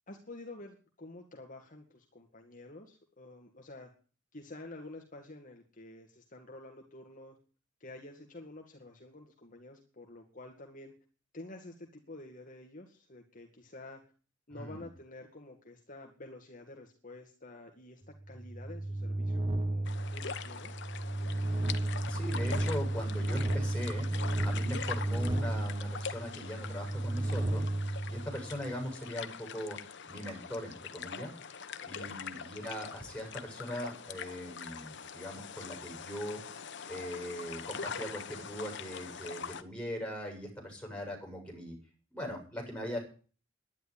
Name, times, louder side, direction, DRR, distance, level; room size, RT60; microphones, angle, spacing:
voice 1, 0.1-3.9 4.3-7.4 7.8-10.9 11.3-14.0 14.5-18.0 18.3-20.8 31.9-32.2, left 2 dB, 40° left, 2 dB, 2.1 m, -49 dB
voice 2, 14.5-14.9 22.1-24.1 24.4-29.8 30.1-31.3 31.9-36.4 36.9-41.8 42.1-43.0, equal, 5° left, 1 dB, 7.3 m, -40 dB
sound 1, 18.2-28.8, right 1 dB, 25° right, 1.2 m, -33 dB
sound 2, 19.9-39.6, left 6 dB, 60° left, 1.3 m, -43 dB
11.5 x 10.5 x 10.0 m, 0.39 s
head